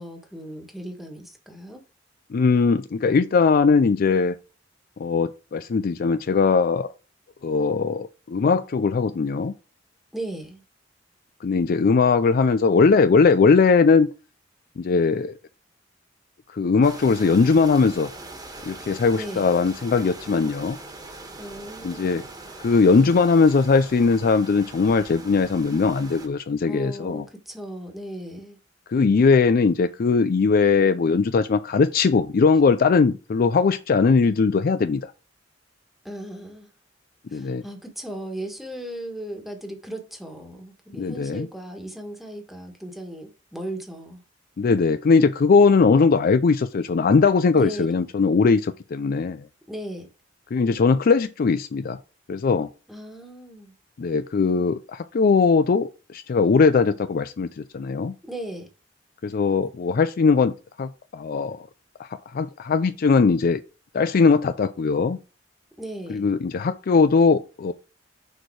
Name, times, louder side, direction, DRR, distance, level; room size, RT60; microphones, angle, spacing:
voice 1, 0.0-1.8 10.1-10.6 19.2-19.5 21.4-22.2 26.6-28.6 36.0-36.7 37.3-44.2 47.5-47.9 49.7-50.1 52.9-53.7 58.3-58.7 65.8-66.3, right 1 dB, ahead, 1.5 m, -36 dB
voice 2, 2.3-4.4 5.0-6.9 7.4-9.5 11.4-14.1 14.8-15.3 16.5-18.1 18.7-20.8 21.8-22.2 22.6-27.2 28.9-35.1 37.3-37.6 41.0-41.5 44.6-49.5 50.5-52.0 52.3-52.7 54.0-58.1 59.2-60.5 60.8-61.6 62.0-63.6 63.9-65.2 66.1-67.7, left 4 dB, 50° left, 0.4 m, -20 dB
sound 1, 16.8-26.3, right 2 dB, 20° right, 1.5 m, -41 dB
6.6 x 4.6 x 4.7 m
head